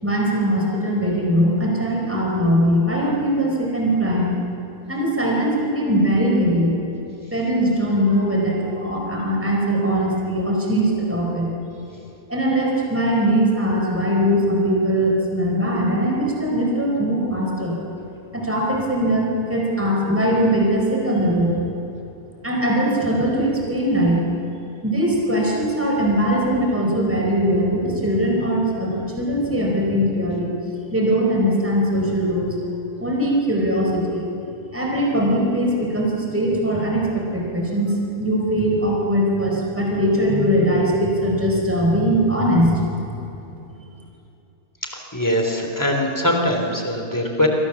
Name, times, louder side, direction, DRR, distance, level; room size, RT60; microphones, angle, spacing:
voice 1, 0.0-4.3 4.9-6.8 7.3-11.5 12.3-17.8 18.3-21.6 22.4-24.2 24.8-30.5 30.9-32.6 33.0-34.2 34.7-37.9 38.2-42.8, equal, 10° right, -2 dB, 4.6 m, -20 dB
voice 2, 44.8-47.5, left 1 dB, 10° left, 2 dB, 3.2 m, -22 dB
29.5 x 23.0 x 7.2 m, 2.9 s
omnidirectional pair, 1.6 m